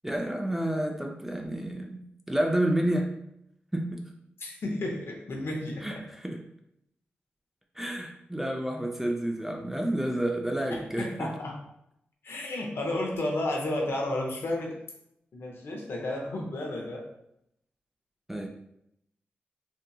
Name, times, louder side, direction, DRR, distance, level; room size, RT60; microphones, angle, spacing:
voice 1, 0.0-3.1 3.7-4.1 5.8-6.4 7.8-11.3 18.3-18.5, right 1 dB, 5° right, 1 dB, 0.4 m, -30 dB
voice 2, 4.4-6.0 10.7-11.6 12.2-14.8 15.3-17.1, left 1 dB, 65° left, 0 dB, 0.7 m, -32 dB
2.7 x 2.5 x 2.3 m, 0.79 s
supercardioid pair, 40°, 4 cm